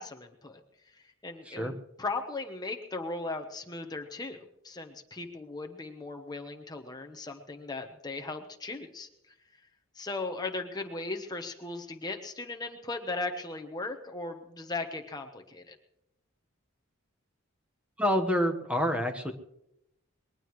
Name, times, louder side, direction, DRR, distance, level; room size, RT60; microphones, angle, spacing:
voice 1, 0.0-9.3 9.9-15.8, left 3 dB, 20° left, 4 dB, 1.0 m, -38 dB
voice 2, 1.4-1.7 18.0-19.3, equal, 5° right, 6 dB, 1.2 m, -27 dB
21.5 x 19.0 x 3.1 m, 0.81 s
head